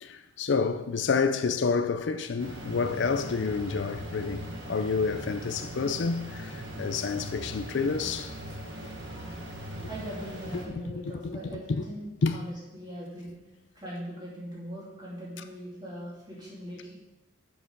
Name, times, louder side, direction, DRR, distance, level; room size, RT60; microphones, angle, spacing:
voice 1, 0.0-8.3 9.2-9.3 10.7-11.8 12.2-12.4, left 4 dB, 65° left, 0.4 m, -29 dB
sound 1, 2.4-10.7, right 1 dB, 70° right, 1.5 m, -40 dB
voice 2, 9.9-13.3 13.7-16.9, equal, 20° right, 2.8 m, -40 dB
7.3 x 6.7 x 5.4 m
head